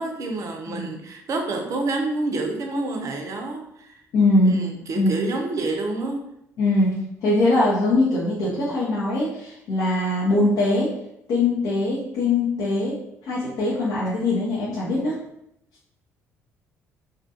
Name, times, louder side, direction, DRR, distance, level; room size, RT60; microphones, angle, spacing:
voice 1, 0.0-3.9 4.4-6.2, right 2 dB, 40° right, 3 dB, 0.5 m, -28 dB
voice 2, 4.1-4.6 5.0-5.1 6.6-6.9 7.2-10.9 11.3-13.0 13.2-15.2, left 2 dB, 55° left, -7 dB, 0.6 m, -21 dB
2.3 x 2.2 x 2.7 m, 0.79 s
figure-of-eight pair, 50°, 8 cm